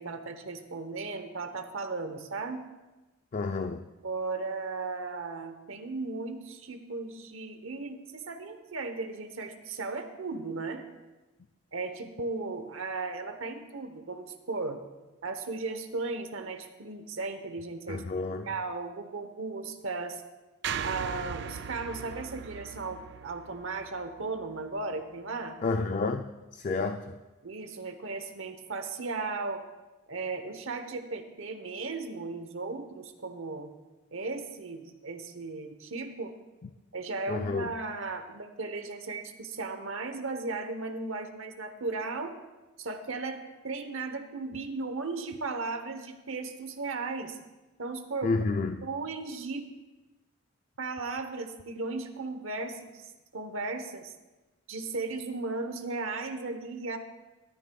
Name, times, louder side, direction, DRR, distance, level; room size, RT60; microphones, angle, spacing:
voice 1, 0.0-2.7 4.0-10.8 11.7-14.8 15.2-18.0 18.5-20.2 20.8-25.6 27.4-29.6 30.1-33.7 34.1-36.3 36.9-42.4 42.8-47.4 47.8-48.3 48.8-49.7 50.8-54.1 54.7-57.0, right 3 dB, 70° right, 7 dB, 0.9 m, -36 dB
voice 2, 3.3-3.8 17.9-18.5 25.6-26.3 26.5-27.1 37.3-37.7 48.2-48.9, left 3 dB, 35° left, 7 dB, 0.3 m, -30 dB
sound 1, 20.6-24.9, right 7 dB, 55° right, 0.3 m, -39 dB
14.0 x 12.5 x 2.3 m, 1.1 s
head